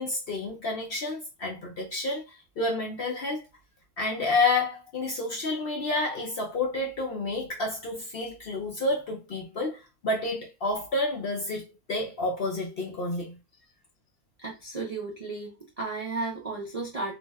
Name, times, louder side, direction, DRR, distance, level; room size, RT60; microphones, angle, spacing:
voice 1, 0.0-3.4 4.0-13.4, left 2 dB, 55° left, 0.6 m, -30 dB
voice 2, 14.4-17.2, right 3 dB, 65° right, 0.3 m, -34 dB
2.6 x 2.1 x 3.3 m
omnidirectional pair, 1.5 m